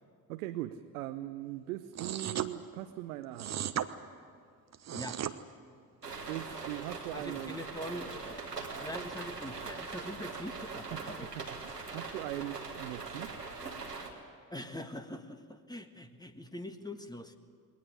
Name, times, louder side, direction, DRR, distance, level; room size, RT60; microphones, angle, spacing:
voice 1, 0.3-3.6 6.3-7.6 10.9-11.0 11.4-13.3, right 14 dB, 70° right, 8 dB, 0.9 m, -40 dB
sound 1, 1.9-2.5 3.4-3.9 4.7-5.3, right 10 dB, 35° right, 1.1 m, -35 dB
sound 2, 6.0-14.1, right 4 dB, 90° right, 1.8 m, -41 dB
voice 2, 7.1-8.4 8.8-11.3 14.5-17.4, left 1 dB, 10° left, 7 dB, 1.5 m, -43 dB
21.0 x 18.5 x 10.0 m, 2.1 s
figure-of-eight pair, 50°, 46 cm